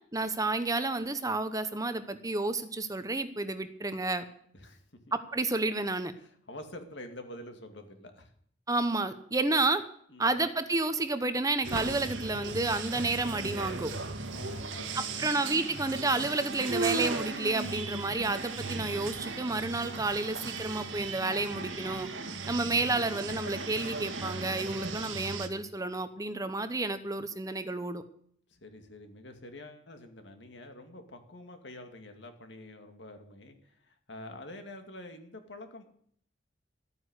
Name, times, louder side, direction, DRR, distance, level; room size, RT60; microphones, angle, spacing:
voice 1, 0.1-4.2 5.1-6.1 8.7-9.8 10.2-13.9 15.2-22.1 22.5-28.0, right 2 dB, 20° right, 10 dB, 0.9 m, -30 dB
voice 2, 6.2-8.3 10.1-10.4 14.3-15.2 22.7-23.1 28.5-35.8, left 1 dB, 65° left, 6 dB, 2.3 m, -47 dB
sound 1, 11.6-25.5, right 3 dB, 85° right, 1.8 m, -36 dB
13.5 x 9.5 x 8.2 m, 0.63 s
head